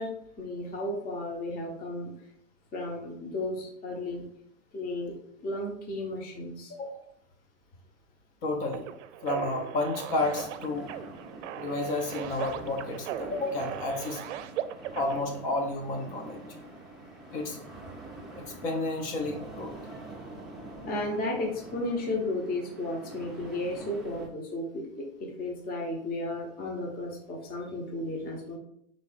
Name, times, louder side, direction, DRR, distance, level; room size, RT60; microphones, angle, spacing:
voice 1, 0.0-2.1 2.7-4.2 4.7-5.1 5.4-6.7 20.8-28.6, left 2 dB, 25° left, 0 dB, 1.0 m, -34 dB
voice 2, 6.7-7.0 8.4-8.9 9.2-10.9 11.5-14.2 14.9-16.4 17.3-17.6 18.4-20.1, left 2 dB, 50° left, 2 dB, 1.1 m, -31 dB
sound 1, 8.7-15.2, right 11 dB, 70° right, 0.5 m, -38 dB
sound 2, 10.1-24.3, right 2 dB, ahead, 0.7 m, -46 dB
3.7 x 3.4 x 4.2 m, 0.71 s
supercardioid pair, 135°, 36 cm